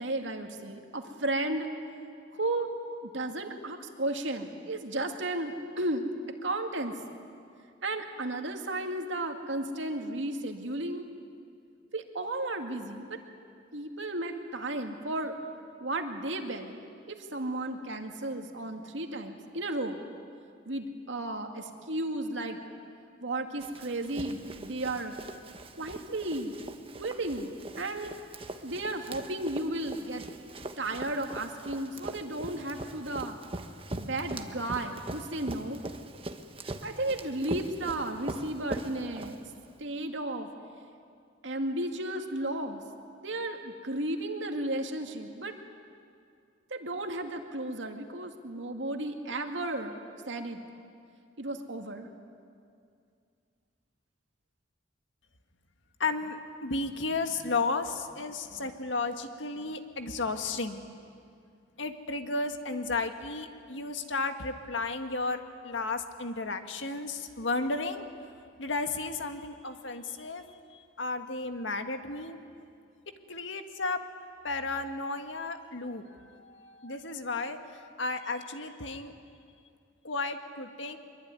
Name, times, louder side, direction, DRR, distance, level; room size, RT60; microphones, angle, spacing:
voice 1, 0.0-1.7 2.3-2.7 3.0-6.1 6.4-7.0 7.8-11.1 11.9-13.2 13.7-15.4 15.8-16.8 17.1-20.0 20.7-22.6 23.2-25.2 25.8-26.5 27.0-28.2 28.6-30.2 30.8-33.4 33.9-35.8 36.8-39.4 39.8-40.5 41.4-42.8 43.2-45.5 46.7-50.6 51.4-52.1, right 2 dB, 75° right, 4 dB, 2.3 m, -34 dB
Run, 23.6-39.8, right 1 dB, 30° right, 1.3 m, -42 dB
voice 2, 56.0-60.9 61.8-68.0 68.6-70.4 70.7-72.4 73.3-74.0 74.4-77.6 78.0-79.1 80.0-81.0, left 3 dB, 80° left, 7 dB, 1.8 m, -33 dB
24.0 x 22.5 x 9.6 m, 2.4 s
head